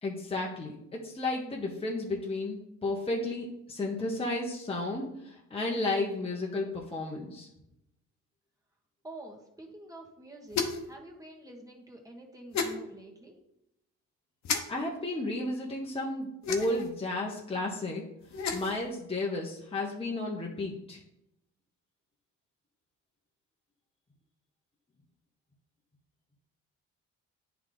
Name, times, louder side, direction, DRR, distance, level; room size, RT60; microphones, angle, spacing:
voice 1, 0.0-7.5 14.7-18.0 18.5-21.0, left 2 dB, 20° left, -2 dB, 1.1 m, -33 dB
voice 2, 9.0-13.4, right 1 dB, 10° right, -1 dB, 1.6 m, -47 dB
sound 1, 10.5-10.9 12.5-12.7 14.4-14.6 16.4-16.9 18.2-18.8, left 5 dB, 65° left, 1.0 m, -31 dB
9.3 x 3.5 x 3.9 m, 0.82 s
cardioid pair, 90°, 30 cm